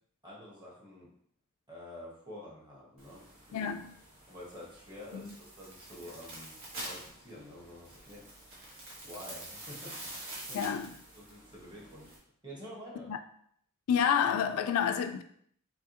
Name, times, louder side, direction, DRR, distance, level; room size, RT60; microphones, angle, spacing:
voice 1, 0.2-1.1 1.7-3.6 4.3-8.3 9.0-10.7 11.1-12.1 12.4-13.1, left 1 dB, 20° right, 1.2 m, -48 dB
sound 1, 3.0-12.2, right 1 dB, 70° right, 1.4 m, -47 dB
voice 2, 3.5-3.9 5.1-5.3 10.5-10.9 13.1-13.2 13.9-15.2, left 8 dB, 75° left, 0.3 m, -29 dB
4.7 x 2.8 x 2.9 m
head